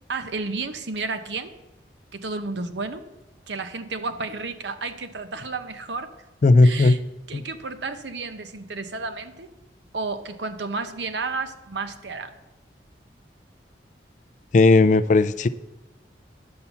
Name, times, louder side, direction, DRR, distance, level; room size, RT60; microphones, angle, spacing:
voice 1, 0.1-1.5 2.1-3.0 3.5-6.1 6.6-7.0 7.3-9.5 9.9-12.3, right 3 dB, 80° right, 9 dB, 0.9 m, -32 dB
voice 2, 6.4-7.0 7.3-7.4 14.5-15.5, left 3 dB, 45° left, 14 dB, 0.3 m, -16 dB
10.5 x 5.7 x 6.9 m, 1.0 s
head